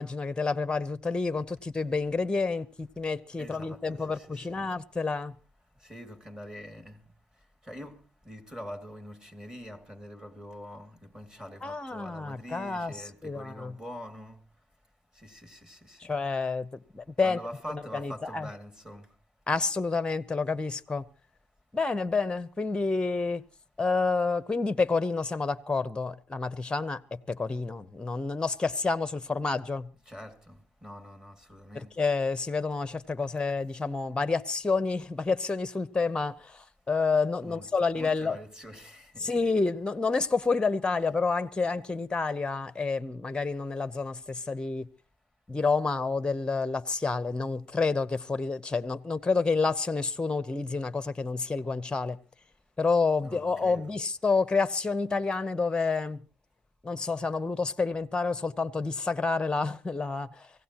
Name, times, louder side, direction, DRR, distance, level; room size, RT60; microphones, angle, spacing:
voice 1, 0.0-5.3 11.6-12.9 13.2-13.7 16.0-17.4 17.9-18.5 19.5-21.0 21.7-23.4 23.8-29.9 31.7-38.4 39.2-44.9 45.5-52.2 52.8-56.2 56.8-60.5, left 4 dB, 15° left, 0.8 m, -29 dB
voice 2, 3.4-4.7 5.8-7.0 7.6-14.4 15.1-16.1 17.2-19.1 30.1-32.0 33.4-33.5 37.4-39.4 53.2-54.0, equal, 10° right, 2.4 m, -44 dB
24.5 x 16.0 x 3.0 m
supercardioid pair, 85°, 7 cm